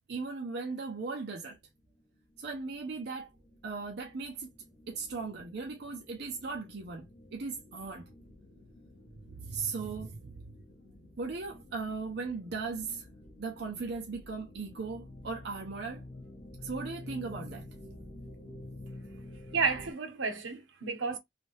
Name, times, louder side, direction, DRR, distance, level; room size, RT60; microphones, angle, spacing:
voice 1, 0.1-1.6 2.4-3.3 3.6-4.5 4.9-8.1 9.3-10.5 11.2-13.0 13.4-16.0 16.6-17.7, right 4 dB, 55° right, 0.5 m, -38 dB
sound 1, 1.6-19.9, left 1 dB, 45° left, 1.6 m, -50 dB
voice 2, 19.5-21.2, right 4 dB, 80° right, 0.9 m, -31 dB
3.2 x 2.6 x 3.1 m
head